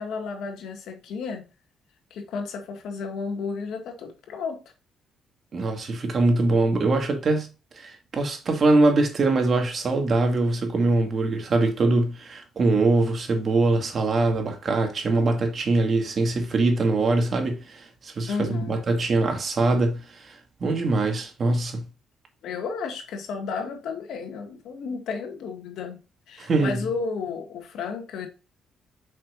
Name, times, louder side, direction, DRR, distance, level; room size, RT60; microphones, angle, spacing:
voice 1, 0.0-1.4 2.1-4.6 18.3-18.8 22.4-26.0 26.3-28.3, left 5 dB, 80° left, 2.0 m, -32 dB
voice 2, 5.5-7.5 7.8-20.4 20.6-21.8 26.4-26.7, right 2 dB, 45° right, 2.2 m, -23 dB
7.8 x 6.0 x 2.6 m
cardioid pair, 90°, 0 cm